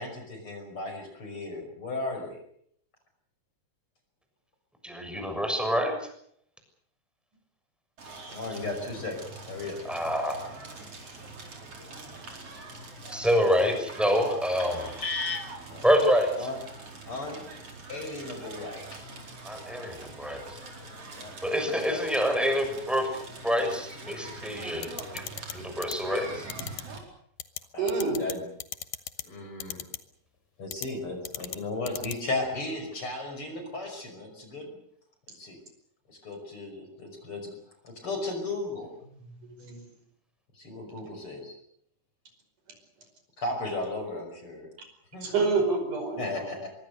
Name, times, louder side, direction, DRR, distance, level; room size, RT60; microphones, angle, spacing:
voice 1, 0.0-2.4 8.2-9.8 14.7-15.8 16.4-16.6 17.1-17.4 17.9-19.1 21.1-21.3 21.9-22.0 27.7-28.4 29.2-29.8 30.6-34.7 35.4-35.6 36.1-37.5 37.8-38.9 40.6-41.6 43.4-44.7 45.1-45.4 46.2-46.7, left 2 dB, 40° left, 5 dB, 6.3 m, -35 dB
voice 2, 4.8-6.1 9.9-10.8 13.1-14.9 15.8-16.5 19.4-20.6 21.4-25.2 25.5-26.5, equal, ahead, 5 dB, 6.4 m, -27 dB
Crackle, 8.0-27.0, right 2 dB, 45° right, 5.4 m, -44 dB
sound 1, 24.8-25.5 25.8-25.9 26.5-26.8 27.4-27.6 27.9-28.3 28.6-29.2 29.6-30.0 30.7-30.9 31.2-31.6 31.9-32.1, left 11 dB, 85° left, 2.8 m, -36 dB
voice 3, 27.8-28.2 39.4-39.8 45.2-46.5, right 4 dB, 70° right, 5 dB, 6.8 m, -28 dB
24.5 x 23.0 x 6.7 m, 0.68 s
omnidirectional pair, 3.7 m